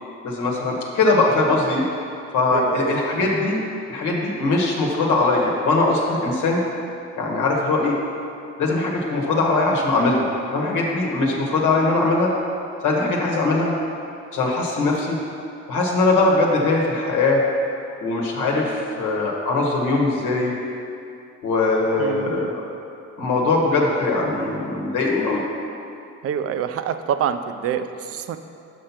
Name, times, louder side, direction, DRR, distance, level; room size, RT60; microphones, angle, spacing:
voice 1, 0.2-1.8 2.3-3.6 3.9-6.6 7.2-8.0 8.6-12.3 12.8-13.7 14.3-15.2 15.7-17.4 18.0-20.5 21.4-22.6 23.2-25.4, left 3 dB, 80° left, -2 dB, 1.1 m, -21 dB
voice 2, 2.5-3.3 22.0-22.5 26.2-28.4, right 8 dB, 50° right, 10 dB, 0.4 m, -27 dB
5.7 x 5.0 x 5.8 m, 2.6 s
cardioid pair, 90°, 30 cm